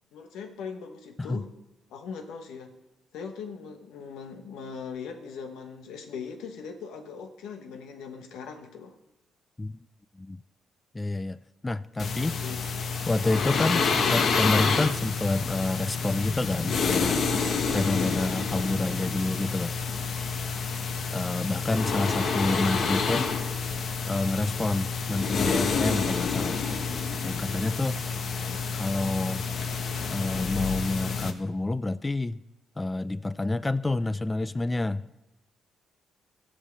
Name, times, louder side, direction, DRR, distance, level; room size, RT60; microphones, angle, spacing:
voice 1, 0.1-1.5 1.9-2.8 3.1-9.0 12.2-12.6 13.5-13.9, left 6 dB, 85° left, 5 dB, 1.1 m, -40 dB
voice 2, 10.9-11.4 11.6-12.4 13.1-17.3 17.7-19.7 21.1-23.3 24.1-26.6 27.2-28.0 28.7-29.4 30.1-32.4 32.8-35.0, left 2 dB, 15° left, 16 dB, 0.3 m, -28 dB
sound 1, 12.0-31.3, left 5 dB, 55° left, 1.1 m, -28 dB
14.5 x 5.5 x 7.5 m, 0.95 s
cardioid pair, 90°, 0 cm